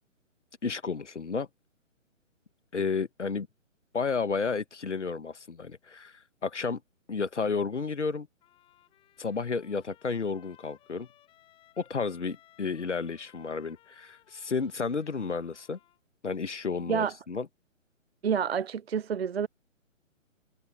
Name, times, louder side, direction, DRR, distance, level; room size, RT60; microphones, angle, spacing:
voice 1, 0.6-1.5 2.7-3.5 3.9-6.8 7.1-8.3 9.2-11.1 11.8-15.8 16.2-17.5, left 5 dB, 60° left, 1.8 m, -32 dB
Trumpet, 8.4-16.0, left 14 dB, 15° left, 5.3 m, -61 dB
voice 2, 18.2-19.5, right 7 dB, 50° right, 0.4 m, -28 dB
figure-of-eight pair, 135°, 39 cm